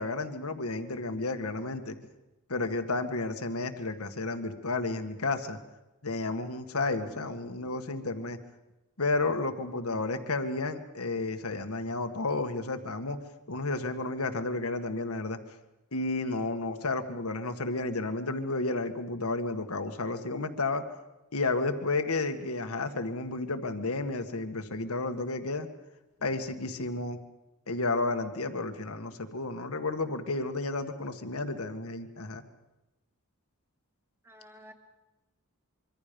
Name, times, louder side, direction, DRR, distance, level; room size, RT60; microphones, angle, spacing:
voice 1, 0.0-2.0 2.5-5.6 6.0-8.4 9.0-13.2 13.5-15.4 15.9-20.8 21.3-25.7 26.2-27.2 27.7-32.4, left 3 dB, 75° left, 7 dB, 1.7 m, -32 dB
voice 2, 7.0-7.4 34.2-34.7, equal, 10° right, 4 dB, 2.2 m, -52 dB
25.5 x 24.0 x 5.3 m, 1.0 s
head